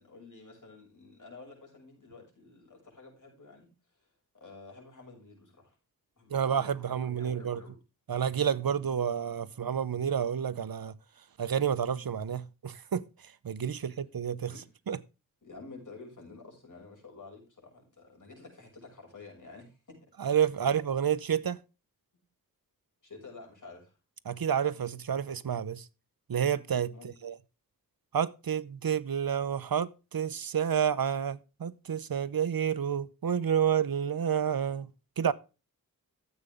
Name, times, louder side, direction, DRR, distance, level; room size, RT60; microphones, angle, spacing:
voice 1, 0.0-3.7 4.0-4.1 4.3-5.7 6.2-7.8 13.7-14.0 14.5-14.7 15.4-20.0 23.0-23.9 26.9-27.1, left 3 dB, 60° left, 6.5 m, -50 dB
voice 2, 6.3-7.6 8.1-10.9 11.4-13.0 13.4-14.5 14.9-15.0 20.2-21.6 24.3-25.8 26.3-26.9 27.2-27.3 28.1-34.9 35.2-35.3, right 8 dB, 80° right, 0.9 m, -29 dB
14.0 x 8.1 x 3.6 m
wide cardioid pair, 90°, 35 cm